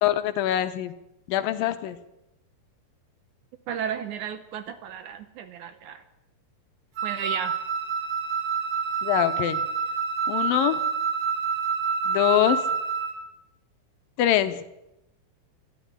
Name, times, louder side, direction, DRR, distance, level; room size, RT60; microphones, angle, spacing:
voice 1, 0.0-0.9 1.3-2.0 9.0-9.7 10.3-10.8 12.1-12.6 14.2-14.6, left 12 dB, 80° left, 11 dB, 2.5 m, -24 dB
voice 2, 3.7-6.0 7.0-7.6, right 8 dB, 75° right, 10 dB, 1.9 m, -33 dB
Wind instrument woodwind instrument, 7.0-13.2, right 6 dB, 55° right, 3.1 m, -27 dB
13.0 x 11.0 x 9.6 m, 0.89 s
omnidirectional pair, 4.2 m